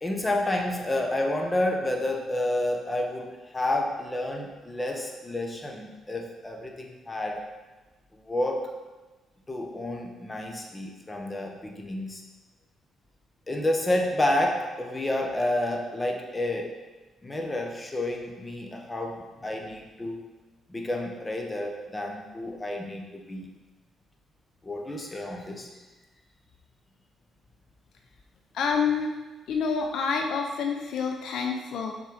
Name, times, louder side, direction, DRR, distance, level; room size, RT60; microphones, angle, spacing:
voice 1, 0.0-7.4 8.1-8.7 9.5-12.2 13.5-16.8 17.2-20.2 20.7-23.5 24.6-25.7, left 1 dB, 20° left, 2 dB, 1.2 m, -30 dB
voice 2, 28.5-29.1 29.5-31.9, left 5 dB, 75° left, 3 dB, 0.7 m, -27 dB
6.8 x 4.3 x 5.0 m, 1.2 s
cardioid pair, 90°, 0 cm